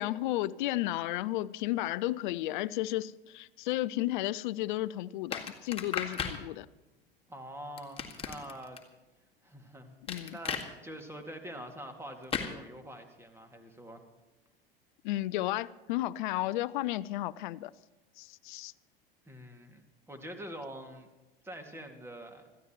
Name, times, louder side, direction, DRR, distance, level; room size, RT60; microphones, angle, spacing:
voice 1, 0.0-6.7 10.1-10.4 15.0-17.7 18.2-18.7, left 16 dB, 55° left, 0.6 m, -33 dB
sound 1, 5.3-6.4 7.8-8.8 10.1-10.7 12.3-12.5, left 6 dB, 20° left, 1.9 m, -35 dB
voice 2, 7.3-8.8 9.4-10.0 10.3-14.0 19.2-19.8 20.1-21.1 21.4-22.4, equal, 10° right, 2.1 m, -45 dB
26.5 x 14.5 x 3.0 m
figure-of-eight pair, 80°, 29 cm